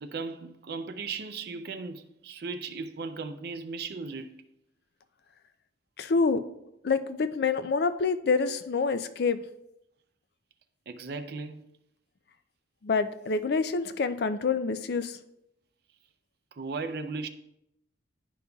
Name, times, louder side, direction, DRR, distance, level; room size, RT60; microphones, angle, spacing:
voice 1, 0.0-4.5 10.9-11.6 16.5-17.3, right 4 dB, 60° right, 0.5 m, -37 dB
voice 2, 6.0-6.4 6.8-9.4 12.8-15.2, left 4 dB, 60° left, 0.4 m, -27 dB
11.0 x 5.3 x 2.3 m
head